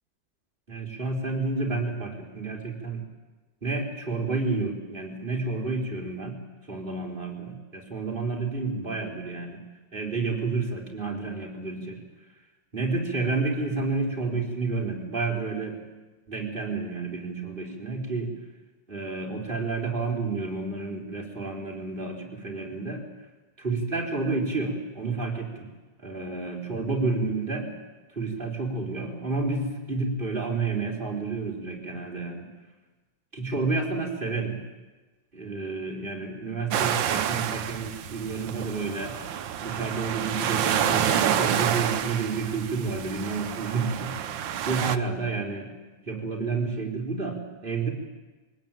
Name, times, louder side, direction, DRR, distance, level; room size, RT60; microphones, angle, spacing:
voice 1, 0.7-3.0 3.6-6.3 6.7-9.6 9.9-12.0 12.7-15.8 16.3-18.3 18.9-23.0 23.6-25.7 26.0-27.7 28.1-32.5 33.3-34.6 35.3-39.1 39.6-44.1 44.6-45.7 46.0-47.9, right 3 dB, 25° right, -1 dB, 4.5 m, -30 dB
sound 1, 36.7-45.0, right 9 dB, 80° right, 1.7 m, -28 dB
23.0 x 19.0 x 9.1 m, 1.2 s
omnidirectional pair, 2.0 m